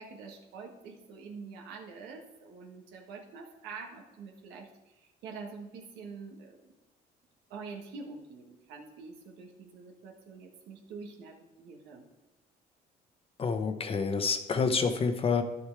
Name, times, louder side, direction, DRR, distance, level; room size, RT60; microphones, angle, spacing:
voice 1, 0.0-6.7 7.5-12.1, right 4 dB, 90° right, 1 dB, 1.7 m, -46 dB
voice 2, 13.4-15.4, left 5 dB, 35° left, 8 dB, 0.9 m, -28 dB
10.5 x 6.6 x 4.8 m, 1.1 s
cardioid pair, 110°, 17 cm